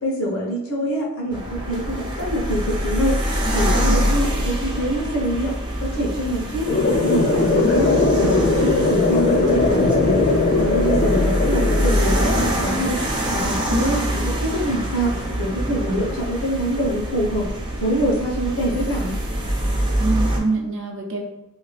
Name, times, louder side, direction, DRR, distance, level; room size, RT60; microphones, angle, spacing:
voice 1, 0.0-3.2 3.5-5.5 5.8-6.7 7.0-10.3 10.6-13.0 13.3-17.5 17.8-19.2, equal, 70° left, -4 dB, 1.0 m, -25 dB
sound 1, 1.3-20.4, equal, 20° right, 0.6 m, -24 dB
voice 2, 3.6-4.1 13.7-13.9 20.0-21.2, right 2 dB, 60° right, 1 dB, 0.6 m, -25 dB
sound 2, 6.7-12.7, left 3 dB, 40° left, 0.4 m, -19 dB
2.8 x 2.7 x 3.3 m, 0.95 s
head